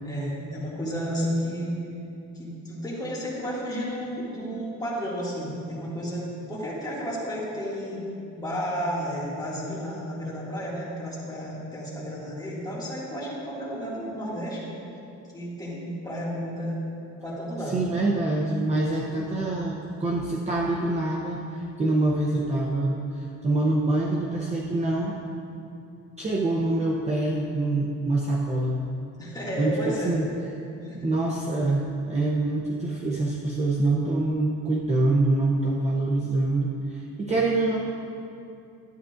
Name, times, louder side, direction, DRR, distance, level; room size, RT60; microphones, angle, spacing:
voice 1, 0.0-1.8 2.3-8.0 8.3-14.8 15.3-16.8 17.2-17.8 29.2-30.2 30.8-31.1, equal, 15° left, -8 dB, 2.2 m, -32 dB
voice 2, 17.7-25.2 26.2-28.8 29.6-30.3 31.0-37.8, right 2 dB, 20° right, -3 dB, 0.6 m, -25 dB
12.0 x 9.1 x 2.5 m, 2.6 s
cardioid pair, 160°, 31 cm